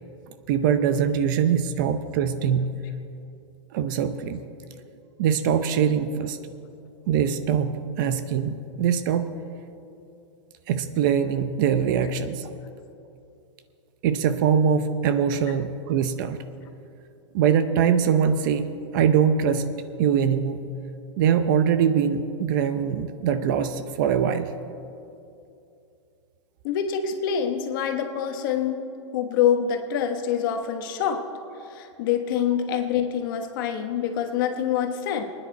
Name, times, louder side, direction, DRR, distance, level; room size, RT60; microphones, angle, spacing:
voice 1, 0.5-2.8 3.7-4.4 5.2-6.4 7.1-9.3 10.7-12.5 14.0-16.4 17.3-18.7 18.9-19.7 20.0-20.6 21.2-24.5, right 8 dB, 45° right, 10 dB, 0.7 m, -23 dB
voice 2, 26.6-31.2 31.7-35.2, left 8 dB, 45° left, 6 dB, 1.3 m, -26 dB
25.0 x 9.9 x 4.1 m, 2.6 s
supercardioid pair, 165°, 15 cm